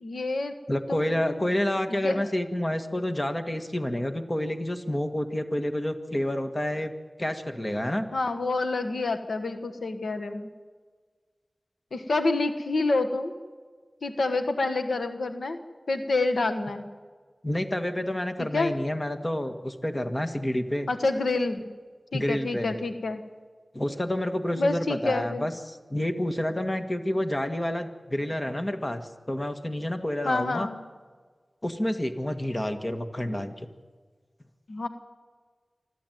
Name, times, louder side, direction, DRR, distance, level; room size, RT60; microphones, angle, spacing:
voice 1, 0.0-0.6 0.9-1.4 1.9-2.2 8.1-10.5 11.9-13.3 14.0-15.6 15.9-16.9 18.4-18.7 20.9-21.7 22.1-23.2 24.5-25.5 30.2-30.8 34.7-34.9, left 2 dB, 90° left, 8 dB, 1.4 m, -28 dB
voice 2, 0.7-6.9 7.2-8.1 17.4-20.9 22.1-22.7 23.7-30.7 31.6-33.7, left 1 dB, 25° left, 7 dB, 1.9 m, -29 dB
25.5 x 13.5 x 9.4 m, 1.5 s
wide cardioid pair, 45°, 0 cm